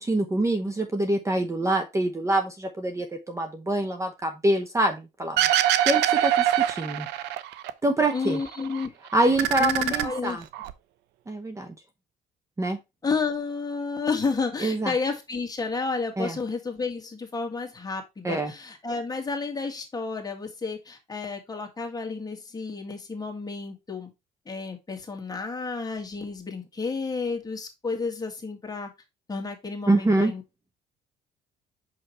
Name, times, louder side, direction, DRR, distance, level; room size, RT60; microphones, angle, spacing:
voice 1, 0.0-5.4 5.8-7.1 7.8-8.4 9.1-10.4 11.3-11.7 12.6-12.8 14.6-14.9 16.2-16.4 18.2-18.5 29.9-30.3, right 1 dB, 15° right, 7 dB, 0.9 m, -25 dB
sound 1, 5.4-7.7 8.0-8.9 9.2-10.7, right 12 dB, 90° right, 0.6 m, -24 dB
voice 2, 8.1-8.9 9.6-10.4 13.0-24.1 24.5-28.9 29.3-30.4, left 4 dB, 20° left, 2 dB, 1.9 m, -31 dB
5.6 x 5.6 x 3.1 m, 0.23 s
cardioid pair, 110°, 17 cm